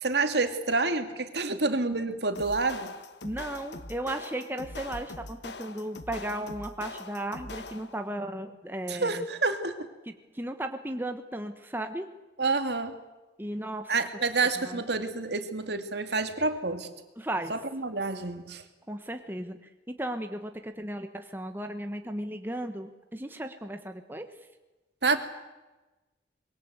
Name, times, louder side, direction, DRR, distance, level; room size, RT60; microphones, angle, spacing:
voice 1, 0.0-2.9 8.9-9.9 12.4-12.9 13.9-16.9 17.5-18.6 25.0-25.2, right 3 dB, 65° right, 7 dB, 2.4 m, -28 dB
sound 1, 2.3-8.1, left 3 dB, 65° left, 1.4 m, -43 dB
voice 2, 3.2-9.2 10.3-12.1 13.4-13.9 14.7-14.8 17.2-17.5 18.9-19.6 19.9-24.3, right 1 dB, 10° right, 6 dB, 1.2 m, -35 dB
25.0 x 22.0 x 8.1 m, 1.1 s
head